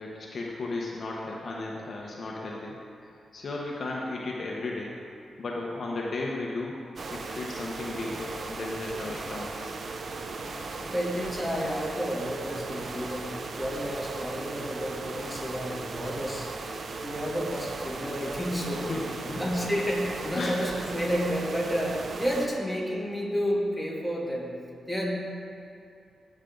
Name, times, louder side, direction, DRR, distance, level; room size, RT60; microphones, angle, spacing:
voice 1, 0.0-2.8 3.0-4.9 5.4-6.8 7.1-9.7 18.7-19.4 20.3-20.5, left 2 dB, 55° left, -3 dB, 1.2 m, -35 dB
sound 1, 7.0-22.5, right 3 dB, 55° right, 0.7 m, -37 dB
voice 2, 10.8-13.3 13.6-16.5 17.0-18.9 19.2-24.6 24.9-25.2, equal, ahead, -6 dB, 2.9 m, -31 dB
17.5 x 6.4 x 4.0 m, 2.5 s
cardioid pair, 80°, 0 cm